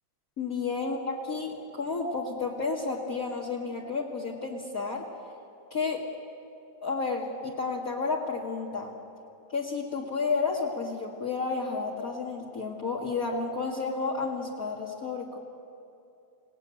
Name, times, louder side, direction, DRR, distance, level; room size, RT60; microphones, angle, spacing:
voice 1, 0.4-5.1 5.7-6.1 6.8-8.9 9.5-15.4, left 4 dB, 45° left, -4 dB, 1.2 m, -31 dB
29.5 x 18.5 x 9.1 m, 2.7 s
omnidirectional pair, 4.9 m